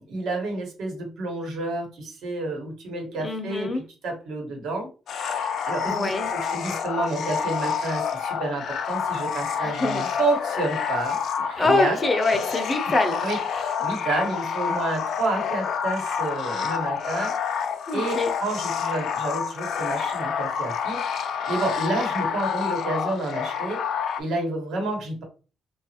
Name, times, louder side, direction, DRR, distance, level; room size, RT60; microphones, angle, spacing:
voice 1, 0.0-12.0 12.5-12.6 13.2-17.6 17.9-18.1 18.4-25.2, right 2 dB, 75° right, 2 dB, 1.2 m, -30 dB
voice 2, 3.2-3.8 5.9-6.3 9.6-10.0 11.6-13.2 17.9-18.3, left 2 dB, 25° left, 6 dB, 0.7 m, -24 dB
sound 1, 5.1-24.2, left 7 dB, 70° left, 0.4 m, -28 dB
2.9 x 2.4 x 2.8 m, 0.35 s
cardioid pair, 90°, 0 cm